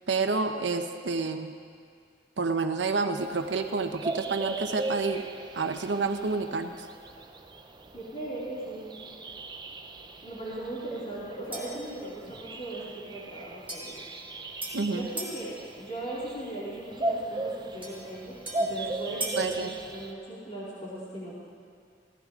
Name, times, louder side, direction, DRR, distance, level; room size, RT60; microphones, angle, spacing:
voice 1, 0.1-1.5 2.4-5.2 5.5-6.7 14.7-15.1 19.4-19.7, right 4 dB, 80° right, 7 dB, 0.9 m, -29 dB
sound 1, 3.2-20.1, right 2 dB, 25° right, 0.7 m, -38 dB
voice 2, 7.9-8.8 10.2-13.9 14.5-21.4, right 1 dB, 40° left, -10 dB, 3.1 m, -38 dB
sound 2, 11.5-11.9 13.7-15.4 17.8-19.5, right 1 dB, 10° right, 3.1 m, -39 dB
16.5 x 14.0 x 3.7 m, 2.2 s
head